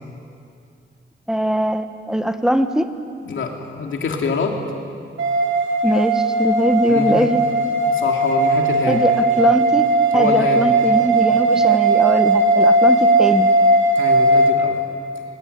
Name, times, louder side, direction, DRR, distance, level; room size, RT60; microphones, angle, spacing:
voice 1, 1.3-2.9 5.8-7.4 8.9-9.9 10.1-13.5, equal, 5° right, 8 dB, 1.2 m, -20 dB
voice 2, 3.2-4.6 6.9-7.3 7.9-9.1 10.1-10.7 14.0-14.8, left 4 dB, 90° left, 2 dB, 3.0 m, -25 dB
sound 1, 5.2-14.5, right 2 dB, 80° right, 3.4 m, -17 dB
22.0 x 21.0 x 9.4 m, 2.4 s
wide cardioid pair, 140°, 20 cm